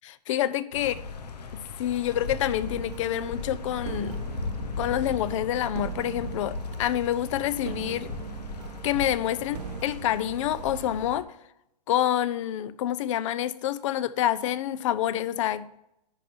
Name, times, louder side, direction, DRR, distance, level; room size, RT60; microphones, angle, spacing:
voice 1, 0.0-0.9 1.8-4.2 4.8-8.1 8.8-11.3 11.9-15.7, left 12 dB, 50° left, 17 dB, 0.6 m, -27 dB
sound 1, 0.7-11.2, left 4 dB, 75° left, 1.0 m, -38 dB
sound 2, 2.5-11.0, right 7 dB, 75° right, 0.9 m, -40 dB
10.5 x 4.6 x 5.2 m, 0.82 s
hypercardioid pair, 125°, 21 cm